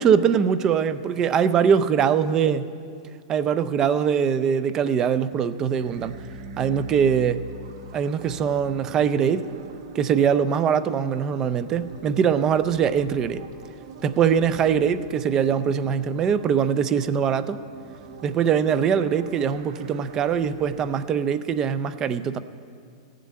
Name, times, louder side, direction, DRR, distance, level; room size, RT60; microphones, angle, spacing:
voice 1, 0.0-2.7 3.3-6.2 6.6-7.4 7.9-9.5 9.9-13.4 14.0-17.6 18.2-22.4, right 7 dB, 20° right, 14 dB, 0.4 m, -22 dB
sound 1, 5.5-20.9, right 3 dB, 50° right, 1.0 m, -42 dB
14.5 x 7.5 x 9.5 m, 2.3 s
supercardioid pair, 165°, 3 cm